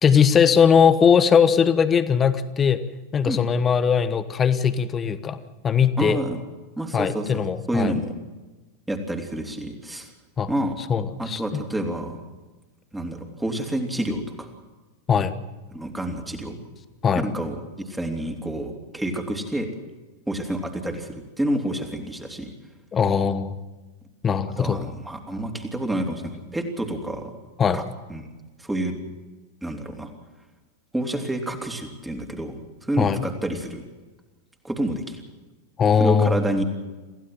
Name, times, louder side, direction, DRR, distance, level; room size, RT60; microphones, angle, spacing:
voice 1, 0.0-2.8 3.1-5.4 5.6-6.2 6.9-7.9 10.4-10.5 10.9-11.6 15.1-15.3 17.0-17.2 22.9-23.5 24.2-24.8 27.6-27.8 33.0-33.2 35.8-36.4, left 7 dB, 20° left, 12 dB, 1.3 m, -20 dB
voice 2, 6.0-6.4 6.8-7.4 7.7-8.1 8.9-10.1 10.5-10.8 11.2-12.2 12.9-14.5 15.7-16.6 17.1-19.7 20.3-22.5 24.6-27.3 27.7-27.8 28.1-28.2 28.6-28.9 29.6-30.1 30.9-33.8 34.6-35.2 36.0-36.6, right 1 dB, 5° right, 4 dB, 3.0 m, -28 dB
27.0 x 15.5 x 7.8 m, 1.2 s
figure-of-eight pair, 90°, 0 cm